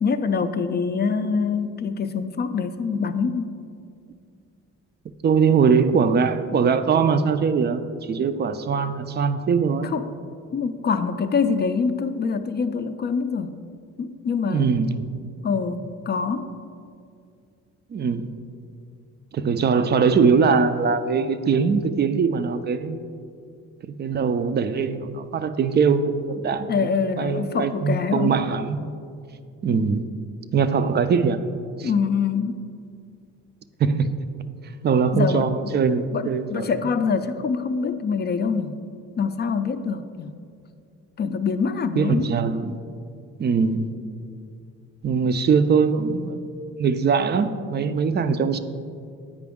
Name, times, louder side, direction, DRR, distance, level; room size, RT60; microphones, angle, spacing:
voice 1, 0.0-3.5 9.8-10.1 10.5-13.5 14.0-14.7 15.4-16.5 26.7-28.4 29.7-29.8 31.8-32.6 35.1-35.8 36.1-38.8 39.2-40.4 41.2-42.3, left 5 dB, 35° left, 10 dB, 0.4 m, -25 dB
voice 2, 5.2-9.9 14.5-15.0 17.9-18.3 19.3-23.0 23.8-28.8 29.6-30.1 30.5-31.4 31.8-31.9 33.8-34.1 34.8-36.8 42.0-42.8 43.4-43.9 45.0-46.5 46.8-48.6, right 5 dB, 35° right, 11 dB, 0.4 m, -21 dB
8.5 x 5.0 x 3.6 m, 2.3 s
cardioid pair, 90°, 30 cm